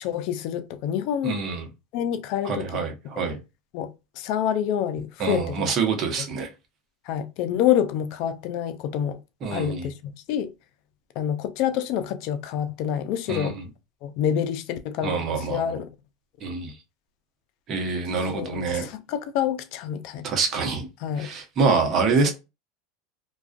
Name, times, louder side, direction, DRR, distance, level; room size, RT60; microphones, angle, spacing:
voice 1, 0.0-1.4 1.9-2.8 3.7-3.9 4.2-5.7 7.0-9.2 9.5-10.5 11.2-13.6 14.0-15.9 18.3-20.3 21.0-21.3, left 9 dB, 60° left, 0.4 m, -27 dB
voice 2, 1.2-1.7 2.4-3.4 5.2-6.5 9.4-9.9 13.3-13.6 15.0-15.6 16.4-16.7 17.7-18.9 20.2-20.9 21.2-22.3, right 4 dB, 45° right, 0.9 m, -26 dB
2.4 x 2.3 x 2.4 m
hypercardioid pair, 100°, 0 cm